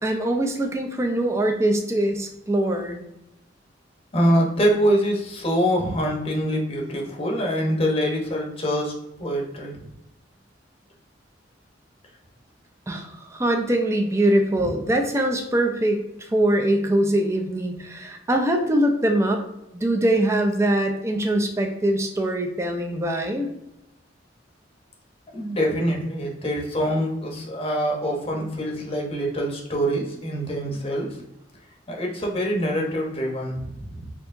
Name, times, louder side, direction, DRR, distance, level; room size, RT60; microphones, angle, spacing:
voice 1, 0.0-3.0 12.9-19.4 19.7-23.5, right 1 dB, 15° right, 3 dB, 0.4 m, -23 dB
voice 2, 4.1-9.9 14.6-14.7 25.3-31.2 31.9-34.1, equal, 30° left, -1 dB, 0.8 m, -25 dB
4.5 x 2.9 x 2.5 m, 0.85 s
head